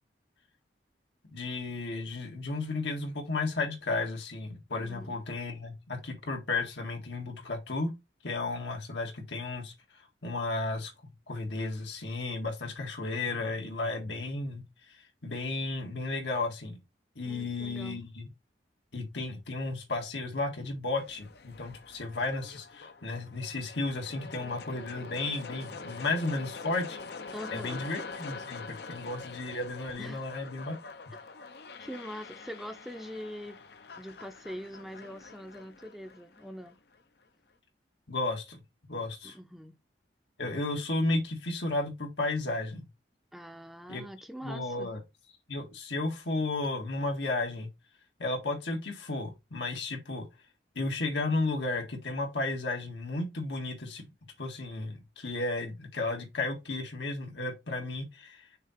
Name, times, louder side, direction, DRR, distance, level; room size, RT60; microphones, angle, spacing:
voice 1, 1.3-7.9 8.2-9.7 10.2-10.9 11.3-14.6 15.2-16.8 17.2-18.3 18.9-30.8 38.1-38.6 38.9-39.4 40.4-42.9 43.9-44.0 44.4-45.0 45.5-47.7 48.2-50.3 50.8-54.0 54.4-58.4, left 2 dB, 85° left, 1.8 m, -33 dB
voice 2, 4.8-5.2 17.2-18.0 27.3-27.9 30.0-30.3 31.8-33.6 34.0-36.8 39.2-39.8 43.3-44.9, equal, ahead, 0.6 m, -43 dB
sound 1, 21.0-37.0, left 4 dB, 65° left, 0.7 m, -45 dB
6.5 x 2.9 x 5.7 m
head